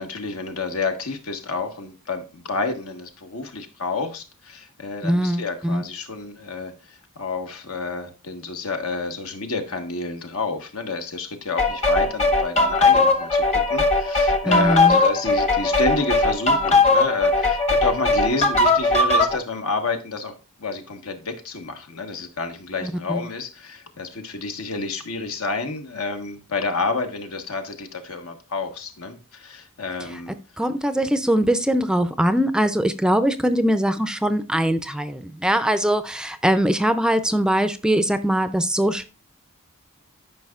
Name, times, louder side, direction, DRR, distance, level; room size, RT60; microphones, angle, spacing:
voice 1, 0.0-20.3 20.6-30.3, left 3 dB, 85° left, 5 dB, 1.2 m, -29 dB
voice 2, 5.0-5.8 14.4-15.0 22.8-23.2 30.6-39.1, right 1 dB, 5° right, 11 dB, 0.4 m, -21 dB
sound 1, 11.6-19.4, left 3 dB, 30° left, 0.9 m, -19 dB
12.5 x 5.4 x 2.4 m, 0.31 s
head